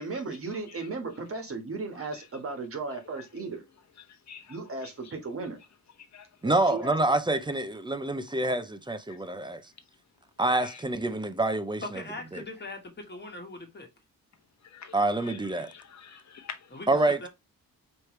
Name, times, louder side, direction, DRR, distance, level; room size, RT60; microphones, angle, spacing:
voice 1, 0.0-3.6 4.5-5.6 6.4-7.0, right 3 dB, 40° right, 1.4 m, -36 dB
voice 2, 1.9-2.3 3.2-3.4 4.1-4.9 6.0-6.3 9.1-9.2 10.6-10.8 14.6-16.8, left 7 dB, 50° left, 1.0 m, -47 dB
voice 3, 6.4-9.6 10.4-11.8 12.3-12.4 14.9-15.7 16.9-17.3, right 2 dB, 15° right, 0.5 m, -27 dB
voice 4, 11.8-13.9 16.7-17.3, left 2 dB, 30° left, 1.4 m, -40 dB
4.9 x 3.1 x 3.1 m
wide cardioid pair, 140°, 36 cm